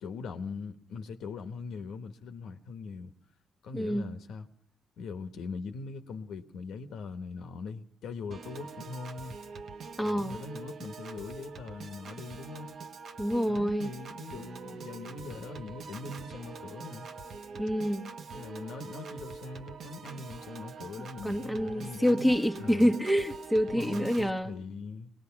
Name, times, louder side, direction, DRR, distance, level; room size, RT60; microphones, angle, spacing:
voice 1, 0.0-3.1 3.6-4.5 5.0-9.3 10.0-12.8 13.4-17.1 18.3-22.9 23.7-25.1, left 4 dB, 75° left, 1.3 m, -41 dB
voice 2, 3.7-4.1 10.0-10.4 13.2-13.9 17.5-18.0 21.2-24.5, equal, ahead, 1.2 m, -27 dB
Piano / Organ, 8.3-24.3, right 4 dB, 60° right, 1.1 m, -44 dB
23.5 x 19.0 x 5.9 m
cardioid pair, 90°, 0 cm